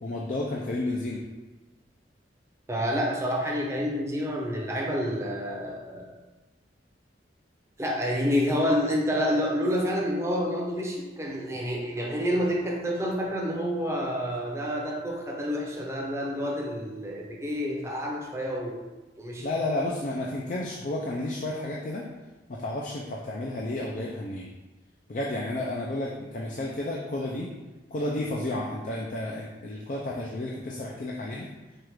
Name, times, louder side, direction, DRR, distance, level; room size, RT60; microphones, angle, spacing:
voice 1, 0.0-1.2 19.4-22.1 22.5-24.5 25.1-27.5 27.9-31.5, left 1 dB, 45° left, -2 dB, 0.4 m, -31 dB
voice 2, 2.7-6.1 7.8-18.8 19.2-19.5, equal, 15° right, -1 dB, 0.7 m, -28 dB
4.6 x 2.4 x 4.7 m, 1.1 s
head